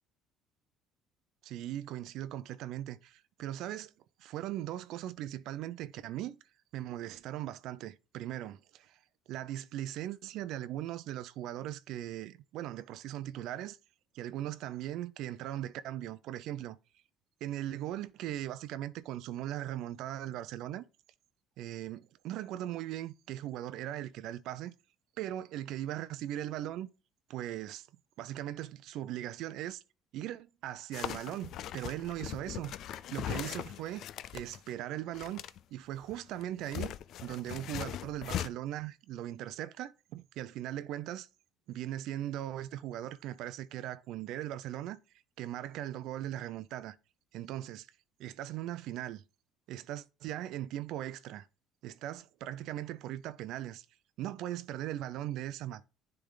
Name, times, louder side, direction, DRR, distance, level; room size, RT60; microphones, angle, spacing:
voice 1, 1.4-3.9 4.2-6.4 6.7-9.0 9.3-13.8 14.1-16.8 17.4-20.8 21.6-24.7 25.2-26.9 27.3-27.9 28.2-29.8 30.1-32.7 33.1-34.0 34.3-35.4 35.7-36.9 37.2-41.3 41.7-45.0 45.4-47.0 47.3-47.9 48.2-49.2 49.7-51.5 51.8-53.9 54.2-55.8, right 13 dB, 70° right, 0.5 m, -39 dB
sound 1, 30.9-34.7 35.1-35.6 36.0-38.5, left 11 dB, 60° left, 0.4 m, -40 dB
10.0 x 3.5 x 3.9 m
cardioid pair, 110°, 0 cm